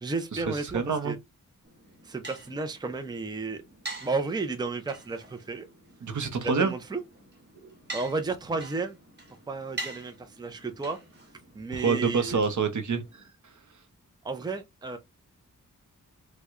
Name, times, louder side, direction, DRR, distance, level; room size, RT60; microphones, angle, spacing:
voice 1, 0.0-1.2 2.0-3.6 4.0-5.7 6.4-7.0 7.9-9.0 9.5-11.0 11.5-12.4 14.2-15.0, right 3 dB, 15° right, 0.5 m, -32 dB
voice 2, 0.7-1.1 6.0-6.7 7.6-7.7 11.7-13.0, right 5 dB, 65° right, 0.8 m, -27 dB
sound 1, 1.6-13.3, right 2 dB, 35° right, 1.2 m, -45 dB
4.5 x 2.2 x 2.4 m
wide cardioid pair, 130°, 32 cm